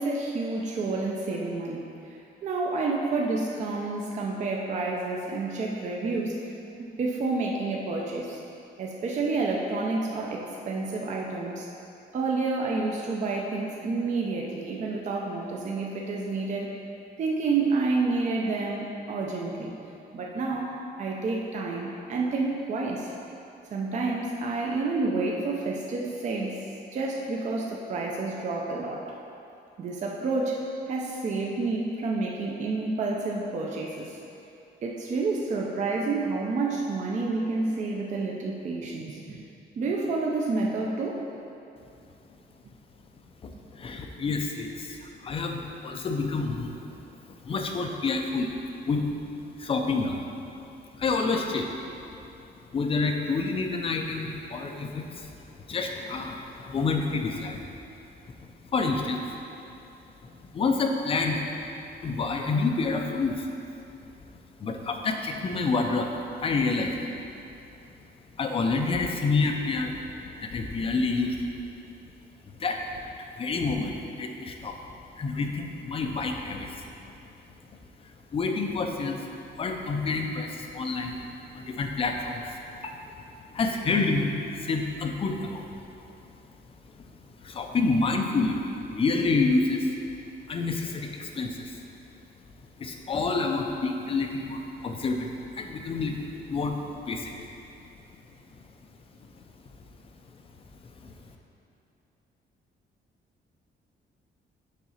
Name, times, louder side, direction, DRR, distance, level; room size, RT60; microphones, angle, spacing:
voice 1, 0.0-1.9 2.4-6.4 6.8-8.4 8.8-11.7 12.1-16.7 17.2-19.7 20.1-20.7 21.0-23.1 23.7-26.6 26.9-29.1 29.8-30.6 30.9-34.2 34.8-39.4 39.8-41.2, right 3 dB, 40° right, -1 dB, 0.5 m, -29 dB
voice 2, 43.4-46.7 47.4-48.5 48.9-49.1 49.6-50.2 51.0-51.7 52.7-55.3 55.7-57.6 58.7-59.2 60.2-61.4 62.0-63.5 64.6-66.1 66.4-66.9 68.4-69.9 70.2-71.4 72.6-72.8 73.4-74.8 75.2-76.8 78.3-79.2 79.6-81.2 81.5-82.4 82.8-83.0 83.5-85.7 87.4-88.6 88.9-89.9 90.5-91.8 92.8-96.8 97.1-97.3 101.0-101.1, left 3 dB, 30° left, 3 dB, 0.5 m, -28 dB
7.3 x 3.7 x 5.6 m, 2.8 s
cardioid pair, 170°, 19 cm